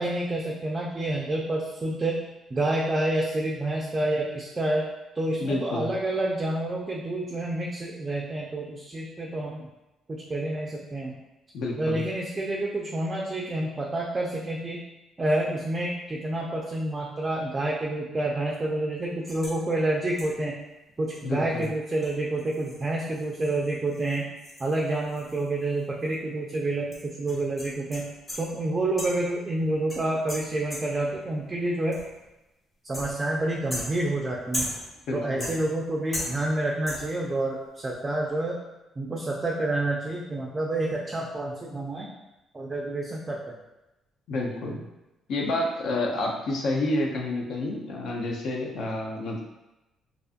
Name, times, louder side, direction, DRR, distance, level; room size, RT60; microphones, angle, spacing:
voice 1, 0.0-2.2 2.5-4.9 5.1-9.7 10.1-11.1 11.8-14.8 15.2-20.6 21.0-24.3 24.6-28.1 28.4-32.0 32.8-34.7 35.1-38.6 39.0-42.1 42.5-43.5, right 2 dB, 25° right, -3 dB, 0.3 m, -28 dB
voice 2, 5.4-5.9 11.5-12.0 21.2-21.6 35.1-35.5 44.3-44.8 45.3-49.4, left 2 dB, 70° left, 0 dB, 0.5 m, -29 dB
sound 1, 19.3-19.6 20.2-20.5 21.1-21.2 21.6-21.7 22.0-25.8 26.0-26.1 26.9-28.6 29.0-29.4 29.9-31.1 31.9-32.3 32.9-33.4 33.7-35.0 35.4-35.9 36.1-36.6 36.9-37.2, left 1 dB, 20° left, 0.7 m, -38 dB
2.5 x 2.5 x 2.4 m, 0.97 s
cardioid pair, 120°, 0 cm